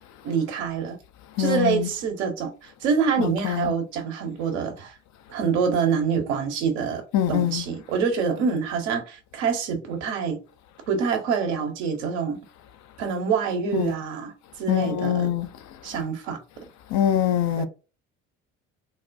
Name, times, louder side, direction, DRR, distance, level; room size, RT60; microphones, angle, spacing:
voice 1, 0.2-1.0 1.4-4.9 5.3-7.0 7.3-10.4 10.9-12.4 13.0-14.3 14.6-15.3 15.8-16.4 17.6-17.7, right 6 dB, 70° right, 0.9 m, -26 dB
voice 2, 1.4-1.9 3.2-3.7 7.1-7.6 13.7-13.9 14.7-15.5 16.9-17.7, left 11 dB, 50° left, 0.6 m, -24 dB
3.8 x 2.2 x 2.5 m
hypercardioid pair, 55°, 37 cm